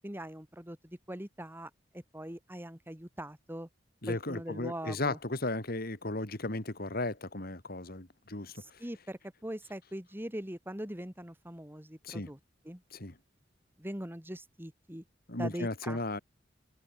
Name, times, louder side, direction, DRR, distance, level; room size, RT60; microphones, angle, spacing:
voice 1, 0.0-3.7 4.1-5.2 8.5-12.4 12.6-12.8 13.8-15.0 15.4-16.2, right 1 dB, 10° right, 3.1 m, -42 dB
voice 2, 4.0-8.5 12.0-12.3 12.9-13.1 15.3-16.2, left 2 dB, 55° left, 3.0 m, -35 dB
head